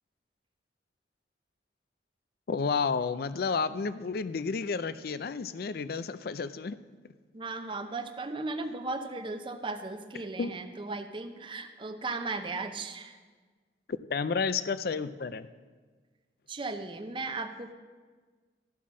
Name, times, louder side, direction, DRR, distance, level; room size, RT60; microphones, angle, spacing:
voice 1, 2.5-6.8 10.4-10.5 14.1-15.5, left 5 dB, 55° left, 14 dB, 0.4 m, -31 dB
voice 2, 7.3-13.2 16.5-17.7, right 3 dB, 30° right, 7 dB, 0.6 m, -36 dB
13.0 x 5.8 x 6.2 m, 1.4 s
head